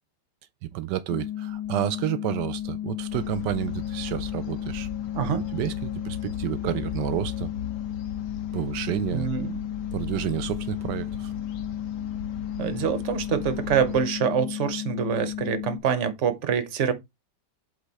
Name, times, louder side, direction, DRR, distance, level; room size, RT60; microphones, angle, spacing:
voice 1, 0.7-4.9 5.5-7.5 8.5-9.3 9.9-11.3, right 13 dB, 80° right, 1.2 m, -30 dB
sound 1, 1.1-15.8, left 11 dB, 60° left, 2.0 m, -33 dB
sound 2, 3.1-14.0, left 6 dB, 75° left, 1.4 m, -39 dB
voice 2, 5.1-5.5 9.1-9.5 12.6-16.9, right 7 dB, 50° right, 1.1 m, -25 dB
8.0 x 3.5 x 4.0 m
omnidirectional pair, 1.8 m